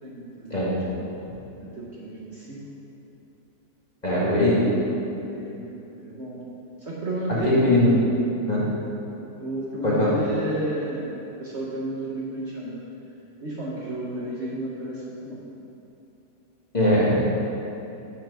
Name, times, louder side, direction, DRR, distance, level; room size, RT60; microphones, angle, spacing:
voice 1, 0.0-1.2 1.6-2.6 5.1-5.7 6.0-6.4 6.8-7.7 9.3-12.8 13.4-15.4, right 1 dB, 45° right, -5 dB, 1.2 m, -32 dB
voice 2, 4.0-4.6 7.4-7.9 8.5-8.6 9.8-10.1 16.7-17.2, left 1 dB, 25° left, -8 dB, 1.6 m, -20 dB
6.8 x 5.9 x 6.2 m, 2.9 s
omnidirectional pair, 1.8 m